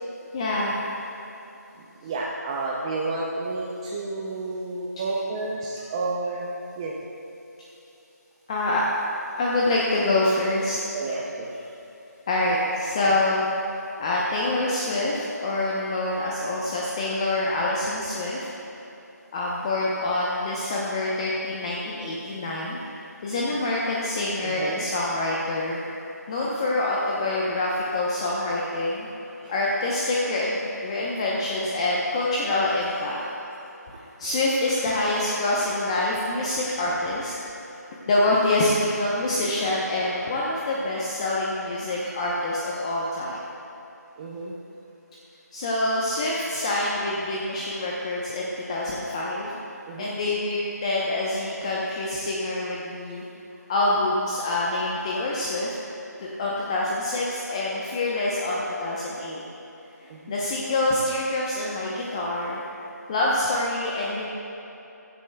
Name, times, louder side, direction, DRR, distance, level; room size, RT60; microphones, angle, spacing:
voice 1, 0.3-0.8 8.5-8.8 9.4-10.8 12.3-13.4 13.8-18.5 19.3-22.8 23.2-25.8 26.3-29.1 29.5-33.2 34.2-37.6 38.1-43.4 45.5-49.6 50.0-53.2 53.7-55.7 56.2-59.4 60.0-62.6 63.1-64.2, left 2 dB, 20° left, -5 dB, 0.9 m, -26 dB
voice 2, 2.0-6.5 6.8-6.9 10.9-11.5 24.4-24.9 27.4-27.5 28.4-28.5 29.4-29.5 32.8-33.5 37.2-37.4 41.8-43.1 44.2-44.5 49.9-50.1 60.1-60.3, right 3 dB, 15° right, -3 dB, 0.6 m, -32 dB
15.5 x 14.5 x 2.3 m, 3.0 s
figure-of-eight pair, 165°, 10 cm